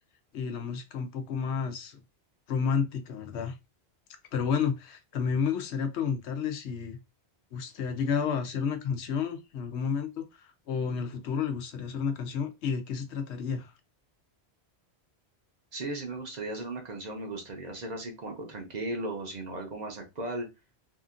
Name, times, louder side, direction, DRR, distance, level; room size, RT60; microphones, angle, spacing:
voice 1, 0.3-2.0 2.5-3.6 4.3-7.0 7.5-13.7, left 6 dB, 85° left, 0.9 m, -31 dB
voice 2, 15.7-20.5, right 2 dB, 45° right, 0.7 m, -36 dB
2.8 x 2.5 x 2.4 m
omnidirectional pair, 1.1 m